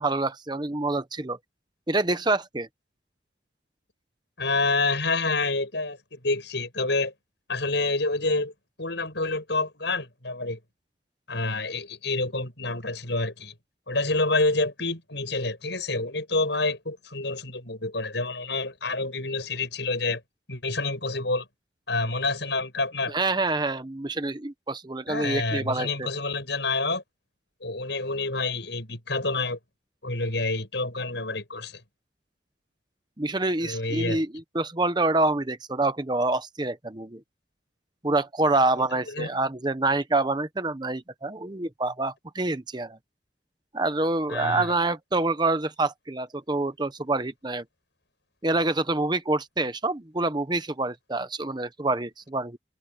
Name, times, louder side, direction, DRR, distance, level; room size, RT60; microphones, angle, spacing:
voice 1, 0.0-1.4 1.9-2.7 23.1-25.9 33.2-34.3 34.5-37.2 38.0-43.0 43.7-47.6 48.4-52.6, right 2 dB, 25° right, 0.9 m, -26 dB
voice 2, 4.4-7.1 7.5-8.5 8.8-10.6 11.3-13.5 13.9-20.2 20.5-21.5 21.9-23.1 25.1-27.0 27.6-29.6 30.0-31.8 33.6-34.2 39.1-39.3 44.3-44.7, left 3 dB, 65° left, 7.6 m, -28 dB
head